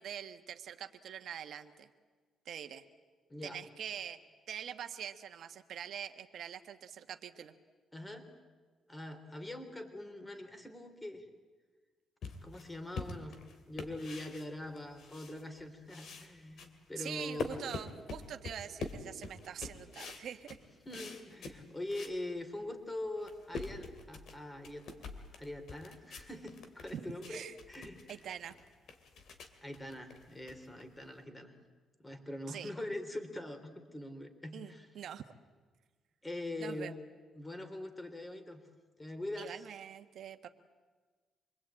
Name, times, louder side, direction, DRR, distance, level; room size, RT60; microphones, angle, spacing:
voice 1, 0.0-1.9 2.4-2.8 3.4-4.2 4.5-7.5 17.0-20.6 26.9-27.6 28.1-28.6 32.5-32.7 34.5-35.2 36.6-36.9 39.4-40.5, right 9 dB, 65° right, 7 dB, 1.4 m, -44 dB
voice 2, 7.9-8.3 8.9-11.2 12.4-13.4 13.7-17.6 20.8-25.0 25.3-28.1 29.6-31.5 32.0-34.9 36.2-37.0 37.3-38.6 39.0-39.6, left 1 dB, 15° left, 8 dB, 3.3 m, -43 dB
sound 1, 12.2-15.6 15.9-22.2 22.6-22.7 23.1-31.2, left 4 dB, 65° left, 2.9 m, -45 dB
26.5 x 21.5 x 8.9 m, 1.4 s
cardioid pair, 90°, 0 cm